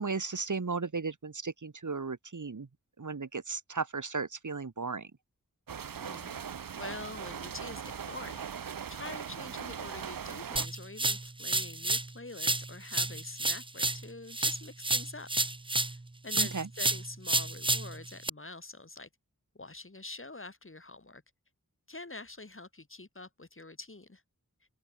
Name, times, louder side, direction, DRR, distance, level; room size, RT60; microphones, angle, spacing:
voice 1, 0.0-2.7 3.0-5.1 16.3-16.7, right 4 dB, 65° right, 1.8 m, -35 dB
sound 1, 5.7-10.7, right 7 dB, 80° right, 0.7 m, -40 dB
voice 2, 6.0-6.4 6.8-15.3 15.9-19.1 19.5-21.2 21.9-24.2, left 2 dB, 40° left, 2.5 m, -46 dB
sound 2, 10.6-12.1 12.4-16.0 16.3-18.3, right 2 dB, 15° right, 0.6 m, -30 dB
open air
wide cardioid pair, 55°, 33 cm